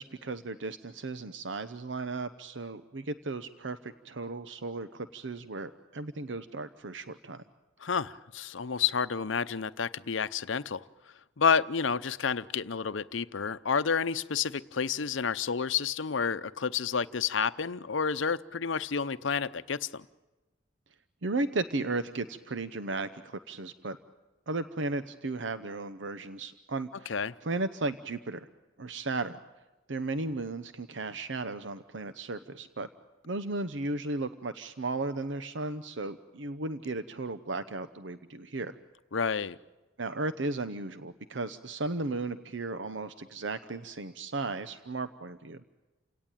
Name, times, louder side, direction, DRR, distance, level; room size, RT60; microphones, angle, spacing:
voice 1, 0.0-7.4 21.2-24.0 24.5-28.5 28.8-29.4 29.9-32.9 33.3-38.7 40.0-45.6, right 3 dB, 75° right, 0.8 m, -35 dB
voice 2, 7.8-10.8 11.4-20.0 27.1-27.3 39.1-39.6, left 6 dB, 85° left, 0.7 m, -30 dB
29.0 x 17.5 x 9.0 m
head